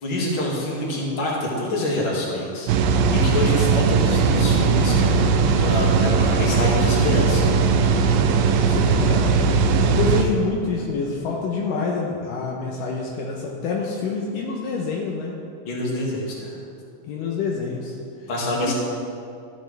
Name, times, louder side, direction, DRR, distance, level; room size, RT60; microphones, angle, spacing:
voice 1, 0.0-2.7 3.1-5.2 5.6-7.5 15.7-16.6 18.3-18.7, left 1 dB, 40° left, -5 dB, 2.5 m, -26 dB
sound 1, 2.7-10.2, right 5 dB, 85° right, 2.5 m, -19 dB
voice 2, 8.6-9.4 9.6-15.4 17.0-18.0 18.6-18.7, left 4 dB, 75° left, -2 dB, 2.3 m, -27 dB
14.0 x 9.8 x 3.4 m, 2.5 s
omnidirectional pair, 4.1 m